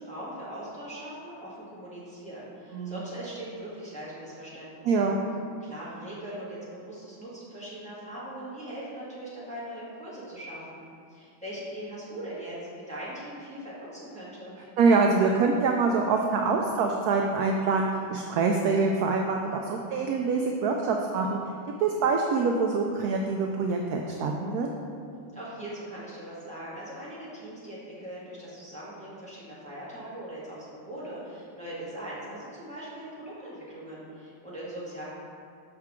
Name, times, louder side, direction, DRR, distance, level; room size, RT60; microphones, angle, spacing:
voice 1, 0.0-5.1 5.6-14.6 25.3-35.0, right 1 dB, 5° left, -9 dB, 1.4 m, -40 dB
voice 2, 4.8-5.2 14.8-21.4 21.8-24.7, right 4 dB, 80° right, 2 dB, 0.8 m, -25 dB
6.5 x 6.0 x 3.6 m, 2.3 s
omnidirectional pair, 2.1 m